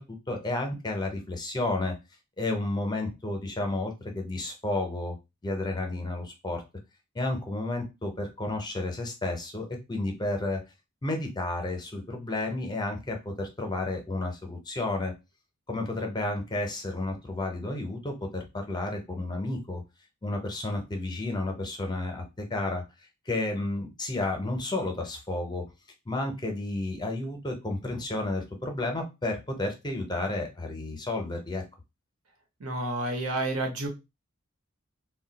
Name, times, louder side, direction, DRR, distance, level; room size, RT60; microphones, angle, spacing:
voice 1, 0.0-2.0 2.4-5.2 5.4-6.6 7.1-10.6 11.0-15.1 15.7-19.8 20.2-22.8 23.3-25.6 26.1-31.6, left 2 dB, 20° left, 3 dB, 0.6 m, -31 dB
voice 2, 32.6-33.9, right 2 dB, 75° right, 4 dB, 0.9 m, -30 dB
2.3 x 2.2 x 3.9 m, 0.25 s
head